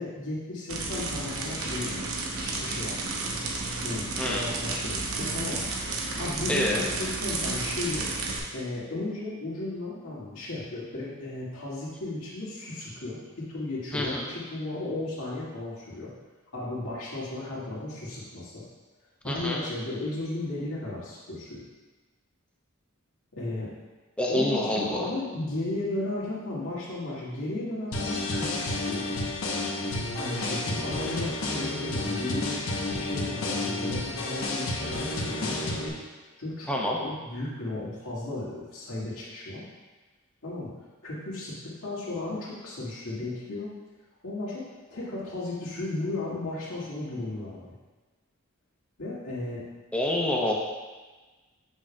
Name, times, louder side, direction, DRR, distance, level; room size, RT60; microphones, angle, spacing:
voice 1, 0.0-2.0 2.4-3.0 3.8-5.7 6.2-8.1 8.5-13.2 13.5-16.1 16.5-18.6 19.2-21.6 23.3-23.7 24.3-29.1 30.1-32.7 32.9-35.9 36.4-36.7 37.0-39.6 40.4-40.7 41.0-41.5 41.8-43.7 44.2-44.6 44.9-47.7 49.0-49.6, left 2 dB, 90° left, -7 dB, 1.9 m, -35 dB
sound 1, 0.7-8.4, right 3 dB, 85° right, 0.9 m, -32 dB
voice 2, 6.5-6.9 13.9-14.3 19.2-19.6 24.2-25.1 36.7-37.0 49.9-50.5, left 1 dB, 5° left, -2 dB, 0.8 m, -27 dB
sound 2, 27.9-35.9, left 2 dB, 70° left, 0.9 m, -30 dB
6.9 x 6.2 x 2.3 m, 1.3 s
head